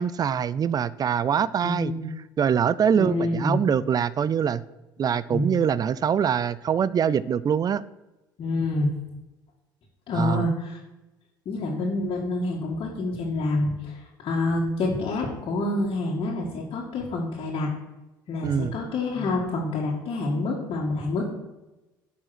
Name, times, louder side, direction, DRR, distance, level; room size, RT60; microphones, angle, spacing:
voice 1, 0.0-1.9 2.4-4.6 5.0-7.8 10.1-10.4 18.4-18.7, right 8 dB, 35° right, 18 dB, 0.5 m, -24 dB
voice 2, 1.6-2.1 2.9-3.6 5.3-5.5 8.4-8.9 10.1-10.8 11.5-17.7 18.3-21.3, left 2 dB, 50° left, -5 dB, 2.2 m, -27 dB
10.0 x 5.7 x 6.1 m, 1.0 s
hypercardioid pair, 65°, 11 cm